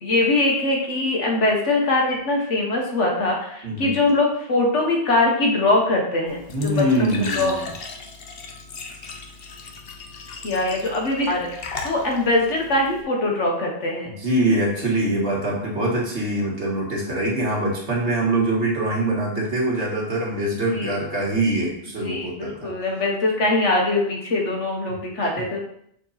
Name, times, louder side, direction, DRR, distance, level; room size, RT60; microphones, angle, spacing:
voice 1, 0.0-7.5 10.4-14.1 20.7-21.0 22.0-25.6, left 2 dB, 85° left, 0 dB, 1.8 m, -22 dB
Glass / Trickle dribble / Fill (with liquid), 6.3-13.0, left 4 dB, 60° left, 1.0 m, -37 dB
voice 2, 6.5-7.7 14.1-22.7, right 1 dB, 70° right, -3 dB, 2.1 m, -23 dB
6.5 x 4.6 x 4.1 m, 0.71 s
omnidirectional pair, 1.2 m